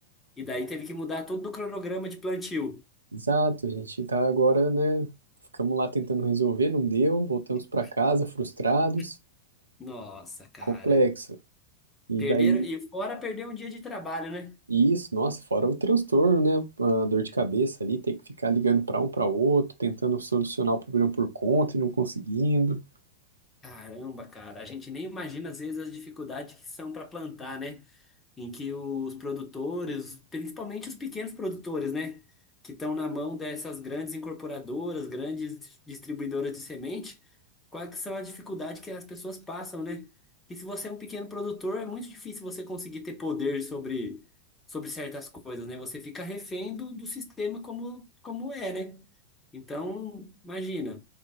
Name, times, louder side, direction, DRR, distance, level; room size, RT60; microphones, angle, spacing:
voice 1, 0.4-2.8 9.8-11.0 12.2-14.6 23.6-27.8 28.4-32.2 32.6-37.2 37.7-40.1 40.5-44.2 44.7-49.1 49.5-51.0, left 2 dB, 15° left, 1.0 m, -35 dB
voice 2, 3.1-5.1 5.6-9.2 10.6-11.3 12.1-12.7 14.7-22.8, right 3 dB, 75° right, 0.4 m, -25 dB
3.7 x 2.5 x 2.5 m
figure-of-eight pair, 90°, 0 cm